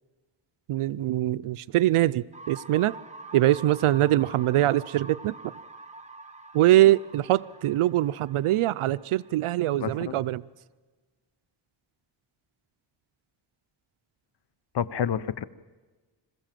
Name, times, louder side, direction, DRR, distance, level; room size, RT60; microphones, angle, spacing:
voice 1, 0.7-2.9 3.3-5.3 6.5-10.4, right 14 dB, 80° right, 0.6 m, -23 dB
sound 1, 2.3-10.2, right 3 dB, 15° right, 1.4 m, -46 dB
voice 2, 9.8-10.2 14.7-15.4, left 8 dB, 55° left, 0.7 m, -29 dB
26.5 x 15.5 x 7.5 m
wide cardioid pair, 105°, 49 cm